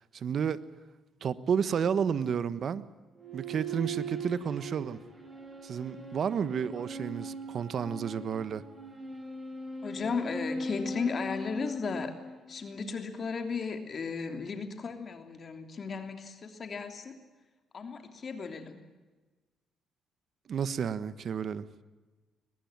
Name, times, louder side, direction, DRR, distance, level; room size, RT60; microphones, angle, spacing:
voice 1, 0.1-0.6 1.2-2.8 3.3-5.0 5.6-8.6 20.5-21.7, right 7 dB, 55° right, 1.3 m, -31 dB
sound 1, 3.1-12.8, right 1 dB, 20° right, 7.1 m, -39 dB
voice 2, 9.8-12.1 12.5-17.2 17.7-18.8, left 5 dB, 45° left, 3.1 m, -35 dB
23.0 x 20.5 x 9.0 m
cardioid pair, 90°, 0 cm